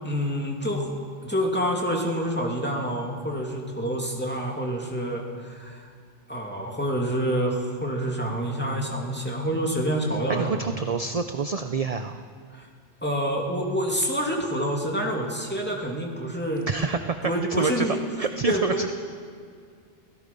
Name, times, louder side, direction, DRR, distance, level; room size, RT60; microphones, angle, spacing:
voice 1, 0.0-0.9 1.2-5.9 6.3-10.7 12.5-12.7 13.0-16.7 17.2-18.0 18.4-18.8, equal, 10° left, 0 dB, 2.7 m, -27 dB
voice 2, 10.3-12.2 16.7-17.9 18.2-18.9, right 5 dB, 40° right, 8 dB, 0.7 m, -27 dB
29.0 x 16.5 x 5.4 m, 2.1 s
omnidirectional pair, 1.1 m